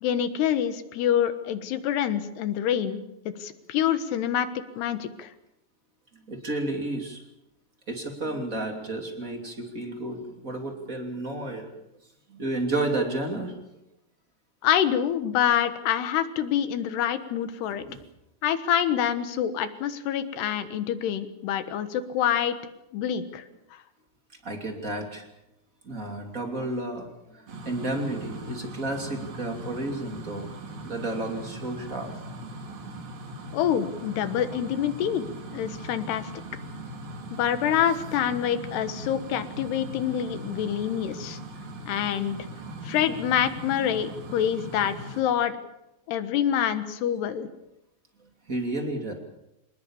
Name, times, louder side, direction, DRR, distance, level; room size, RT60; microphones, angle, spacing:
voice 1, 0.0-4.5 4.8-5.3 14.6-17.8 18.4-22.6 22.9-23.4 23.7-23.8 33.5-35.3 35.5-36.3 37.3-41.4 41.9-42.4 42.8-45.6 46.1-47.5, left 9 dB, 75° left, 11 dB, 3.3 m, -26 dB
voice 2, 6.3-7.2 7.9-11.7 12.3-13.6 17.8-18.0 24.4-25.3 25.8-27.1 27.3-30.5 30.8-32.1 47.4-47.5 48.5-49.1, right 2 dB, 25° right, 4 dB, 2.5 m, -31 dB
sound 1, 27.5-45.2, right 1 dB, 50° right, 3.7 m, -40 dB
26.0 x 20.0 x 7.2 m, 0.87 s
omnidirectional pair, 4.9 m